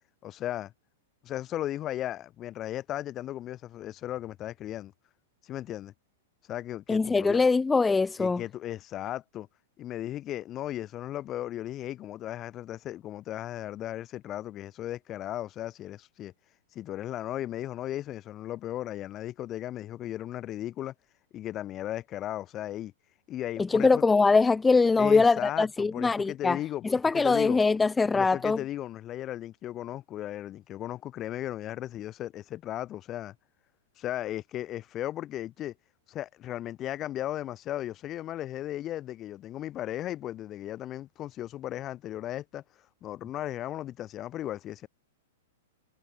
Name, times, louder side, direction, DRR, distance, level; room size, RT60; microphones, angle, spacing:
voice 1, 0.2-0.7 1.2-4.9 5.4-5.9 6.5-7.4 8.2-9.5 9.8-16.3 16.7-20.9 21.3-22.9 23.3-24.0 25.0-27.6 28.1-33.4 34.0-35.7 36.1-42.6 43.0-44.9, left 13 dB, 25° left, 2.0 m, -36 dB
voice 2, 6.9-8.4 23.7-26.6 26.8-28.6, left 4 dB, 10° left, 0.9 m, -23 dB
figure-of-eight pair, 100°, 0 cm